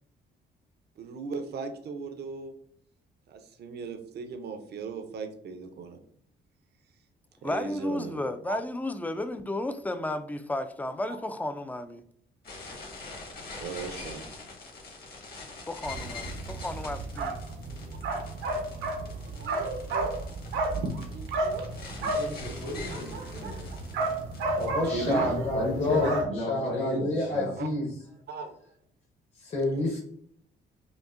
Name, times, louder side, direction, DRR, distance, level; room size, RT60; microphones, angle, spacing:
voice 1, 1.0-2.5 3.3-6.0 7.4-8.6 13.6-14.3 24.8-25.2 27.6-27.7 28.3-28.5 29.7-30.0, right 4 dB, 55° right, 7 dB, 0.6 m, -37 dB
voice 2, 7.4-12.0 15.7-17.4, left 1 dB, 10° left, 10 dB, 0.3 m, -33 dB
sound 1, 12.4-24.7, left 3 dB, 50° left, 1.6 m, -44 dB
sound 2, 15.8-26.2, right 2 dB, 85° right, 0.8 m, -32 dB
voice 3, 22.0-23.7 25.0-27.5, left 1 dB, 75° left, -6 dB, 1.4 m, -34 dB
voice 4, 24.5-27.9 29.4-30.0, left 2 dB, 35° left, -2 dB, 0.9 m, -29 dB
5.1 x 2.6 x 2.5 m, 0.66 s
cardioid pair, 90°, 20 cm